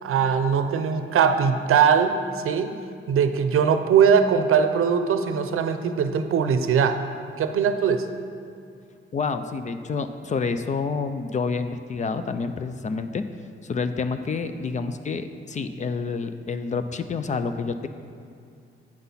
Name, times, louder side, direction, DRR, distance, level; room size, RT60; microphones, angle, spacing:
voice 1, 0.0-2.7 3.1-7.0 7.4-8.1, right 7 dB, 85° right, 8 dB, 0.6 m, -21 dB
voice 2, 9.1-13.2 13.6-17.9, left 4 dB, 35° left, 10 dB, 0.4 m, -28 dB
8.8 x 6.0 x 5.6 m, 2.4 s
wide cardioid pair, 175°, 21 cm